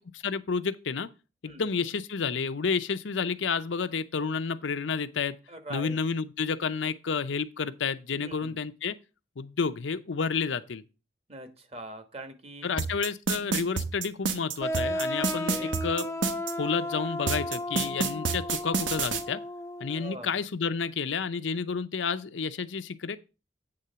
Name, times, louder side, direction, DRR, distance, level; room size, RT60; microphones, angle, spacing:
voice 1, 0.2-1.1 1.4-5.3 5.7-8.9 9.4-10.8 12.6-16.1 16.6-19.4 19.8-23.2, left 5 dB, 85° left, 0.6 m, -30 dB
voice 2, 5.5-6.0 8.1-8.6 11.3-12.7 15.2-15.8 19.9-20.3, right 1 dB, 35° right, 1.2 m, -43 dB
sound 1, 12.8-16.5 17.3-19.2, right 5 dB, 85° right, 1.0 m, -28 dB
sound 2, 14.6-20.1, left 1 dB, 15° left, 0.5 m, -34 dB
8.7 x 3.7 x 6.7 m
head